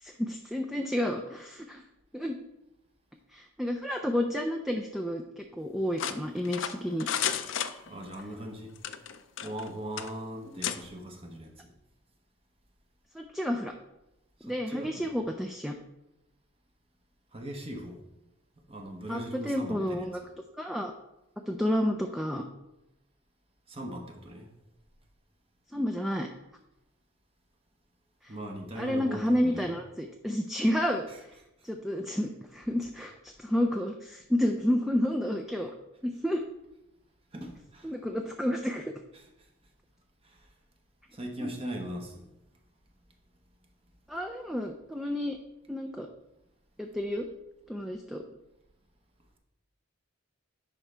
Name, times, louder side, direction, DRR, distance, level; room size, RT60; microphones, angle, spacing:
voice 1, 0.0-1.8 2.1-2.4 3.3-7.1 13.1-13.7 14.4-15.8 19.1-20.2 20.6-20.9 21.5-22.4 25.7-26.3 28.2-28.3 28.8-31.1 31.6-35.7 36.0-36.4 37.8-38.9 41.4-41.5 44.1-45.4 45.7-46.1 46.8-47.3 47.7-48.2, equal, ahead, 3 dB, 0.4 m, -30 dB
sound 1, 6.0-8.2 8.8-9.7 10.0-10.1 10.6-10.8, left 9 dB, 65° left, 0.5 m, -32 dB
voice 2, 7.8-8.7 9.4-11.7 14.4-15.1 17.3-18.0 18.7-20.1 23.7-24.5 28.3-29.7 31.1-31.2 31.6-31.7 37.3-37.9 39.1-39.5 40.2-40.5 41.1-42.3, right 1 dB, 30° right, 2 dB, 0.9 m, -40 dB
10.5 x 4.9 x 3.4 m, 0.92 s
head